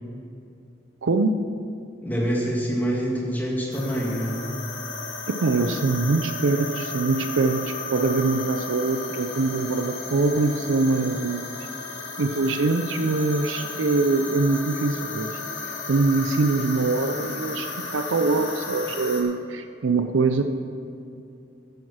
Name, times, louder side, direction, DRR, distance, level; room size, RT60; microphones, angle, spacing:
voice 1, 1.0-1.5 5.3-11.5 12.2-15.3 15.9-20.4, right 3 dB, 85° right, 8 dB, 0.5 m, -23 dB
voice 2, 2.0-4.4, equal, 10° left, -3 dB, 1.9 m, -26 dB
sound 1, 3.7-19.2, left 3 dB, 80° left, 1.8 m, -34 dB
9.6 x 9.6 x 6.2 m, 2.6 s
head